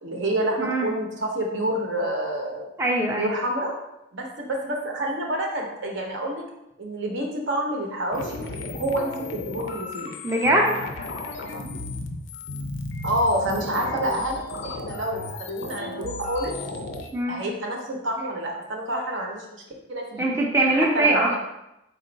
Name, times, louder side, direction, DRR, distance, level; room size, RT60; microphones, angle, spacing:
voice 1, 0.0-2.7 3.2-3.8 4.1-6.4 6.8-8.4 8.8-10.1 13.0-16.5 17.3-19.5 19.9-20.3 20.6-21.4, right 1 dB, 80° right, 0 dB, 0.8 m, -28 dB
voice 2, 2.8-3.3 10.2-10.8 17.1-17.4 20.2-21.3, right 1 dB, 15° right, -1 dB, 0.4 m, -22 dB
sound 1, 8.1-17.1, left 2 dB, 85° left, 0.5 m, -34 dB
4.3 x 2.4 x 3.9 m, 0.87 s
head